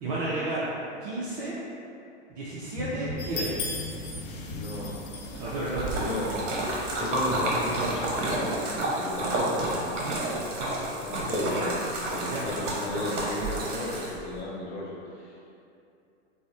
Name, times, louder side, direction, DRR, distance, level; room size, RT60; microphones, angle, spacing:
voice 1, 0.0-0.7 1.0-1.6 2.3-3.7 5.4-5.9 12.3-12.4, right 2 dB, 35° right, -8 dB, 0.4 m, -32 dB
sound 1, 2.7-6.1 6.6-6.7, equal, 10° left, 1.1 m, -38 dB
sound 2, 3.2-8.4, left 2 dB, 45° left, 0.4 m, -39 dB
voice 2, 4.5-5.0 5.9-6.3 7.0-9.9 11.0-15.5, left 1 dB, 65° left, -5 dB, 0.8 m, -34 dB
Splash splatter, 5.2-14.4, right 1 dB, 75° right, 0.7 m, -30 dB
3.1 x 2.0 x 2.6 m, 2.6 s
hypercardioid pair, 125°, 36 cm